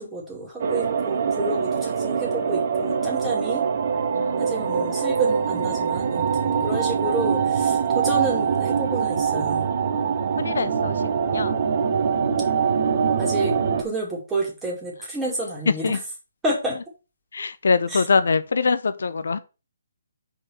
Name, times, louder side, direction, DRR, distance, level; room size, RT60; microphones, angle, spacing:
voice 1, 0.0-3.6 4.4-9.7 13.2-16.0 16.4-16.8 17.9-18.0, right 1 dB, 10° right, 2.5 m, -30 dB
sound 1, 0.6-13.8, right 6 dB, 45° right, 1.1 m, -23 dB
voice 2, 4.2-4.5 10.4-10.9 11.3-11.6 15.8-16.0 17.3-19.4, left 4 dB, 70° left, 0.6 m, -23 dB
4.9 x 4.4 x 5.8 m
hypercardioid pair, 145°, 0 cm